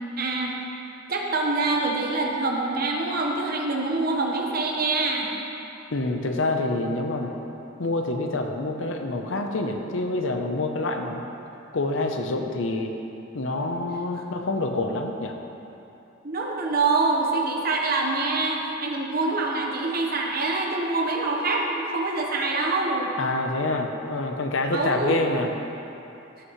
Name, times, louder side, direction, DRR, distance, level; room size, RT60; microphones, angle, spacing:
voice 1, 0.2-0.5 1.1-5.3 16.2-23.1 24.7-25.2, right 3 dB, 45° right, 0 dB, 1.1 m, -25 dB
voice 2, 5.9-7.3 7.8-11.2 11.7-12.9 13.3-15.3 23.2-25.5, left 2 dB, 65° left, 4 dB, 0.7 m, -27 dB
15.5 x 6.4 x 3.1 m, 2.9 s
head